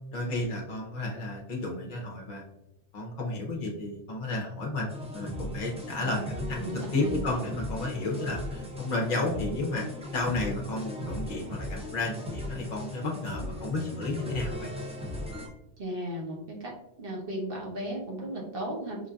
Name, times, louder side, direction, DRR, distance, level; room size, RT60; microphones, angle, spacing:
voice 1, 0.1-2.4 2.9-9.9 10.1-14.7, left 2 dB, 50° left, -1 dB, 0.7 m, -32 dB
sound 1, 4.9-15.5, left 1 dB, 10° right, 0.3 m, -37 dB
voice 2, 6.0-7.2 15.8-19.0, right 1 dB, 55° right, -1 dB, 1.1 m, -36 dB
4.9 x 2.5 x 2.3 m, 0.87 s
omnidirectional pair, 1.1 m